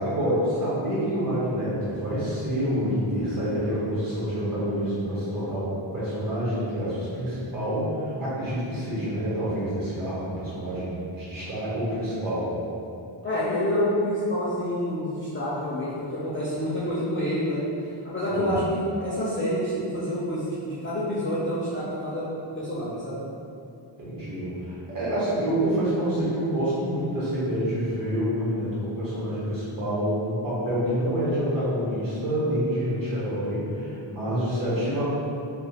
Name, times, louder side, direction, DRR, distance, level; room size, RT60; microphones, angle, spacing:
voice 1, 0.0-12.6 18.3-18.6 24.0-35.1, equal, 45° right, -9 dB, 1.0 m, -27 dB
voice 2, 13.2-17.6 18.0-22.2 22.5-23.2, equal, 30° left, -9 dB, 0.3 m, -27 dB
2.4 x 2.3 x 3.3 m, 2.6 s
wide cardioid pair, 160°, 49 cm